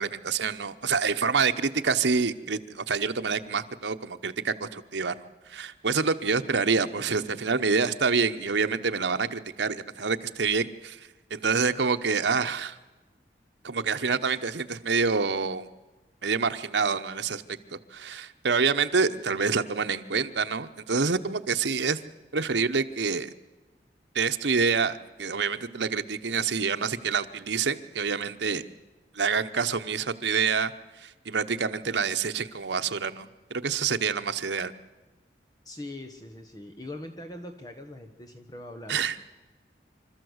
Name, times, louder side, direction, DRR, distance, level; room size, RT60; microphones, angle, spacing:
voice 1, 0.0-11.0 11.3-12.8 13.6-15.7 16.2-22.0 22.3-23.3 24.1-28.6 29.1-30.7 31.0-34.7 38.9-39.2, right 5 dB, 85° right, 8 dB, 1.0 m, -27 dB
voice 2, 35.6-39.2, left 1 dB, 20° left, 4 dB, 1.2 m, -42 dB
26.5 x 13.5 x 8.0 m, 1.2 s
head